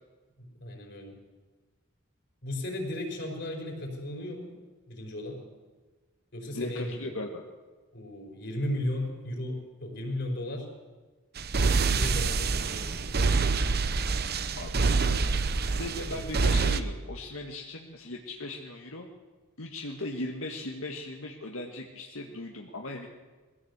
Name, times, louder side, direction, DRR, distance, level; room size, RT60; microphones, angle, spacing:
voice 1, 0.4-1.2 2.4-4.5 4.9-5.4 6.3-7.2 7.9-10.7 11.9-13.4 16.1-16.3 16.6-16.9, left 1 dB, 55° left, 2 dB, 4.9 m, -36 dB
voice 2, 6.5-7.5 14.6-15.3 15.7-19.1 19.6-23.1, left 2 dB, 85° left, 1 dB, 1.7 m, -38 dB
sound 1, 11.4-16.8, right 4 dB, 50° right, 0.9 m, -26 dB
22.0 x 16.0 x 8.1 m, 1.3 s
head